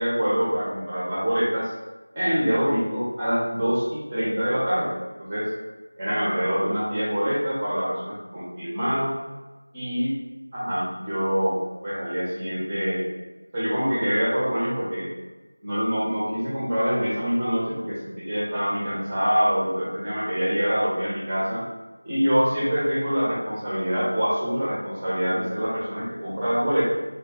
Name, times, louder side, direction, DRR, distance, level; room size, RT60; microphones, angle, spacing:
voice 1, 0.0-1.7 2.1-4.9 5.2-5.5 6.0-9.2 9.7-10.1 10.5-13.1 13.5-15.1 15.6-21.6 22.0-26.9, equal, 10° right, -10 dB, 0.6 m, -25 dB
3.8 x 2.2 x 3.7 m, 1.2 s
figure-of-eight pair, 175°, 0 cm